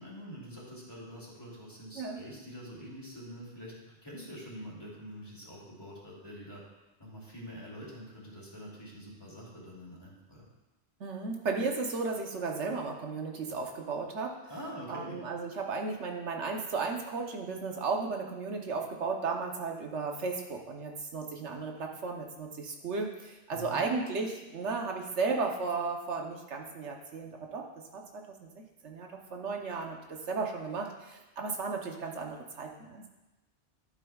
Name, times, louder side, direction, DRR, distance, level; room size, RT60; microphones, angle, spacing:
voice 1, 0.0-6.6 7.0-10.5 14.5-15.2 23.5-23.9, equal, 20° left, -5 dB, 2.7 m, -45 dB
voice 2, 11.0-14.4 14.9-27.7 27.9-33.1, right 4 dB, 85° right, 1 dB, 1.3 m, -35 dB
12.0 x 8.8 x 2.4 m, 1.1 s
omnidirectional pair, 1.2 m